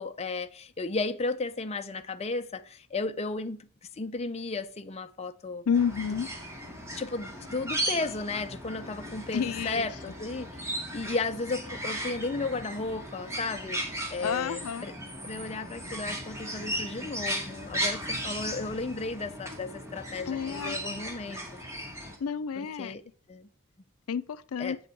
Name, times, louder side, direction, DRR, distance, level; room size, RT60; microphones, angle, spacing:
voice 1, 0.0-3.7 3.9-5.6 6.9-14.9 15.2-21.4 22.6-23.0 23.3-23.5 24.6-24.8, left 3 dB, 30° left, 0.6 m, -34 dB
voice 2, 5.7-6.3 9.3-9.8 14.2-14.8 20.3-20.8 22.2-22.9 24.1-24.8, left 7 dB, 85° left, 0.5 m, -30 dB
sound 1, 5.7-22.2, equal, 15° right, 2.1 m, -36 dB
7.9 x 7.9 x 4.5 m
head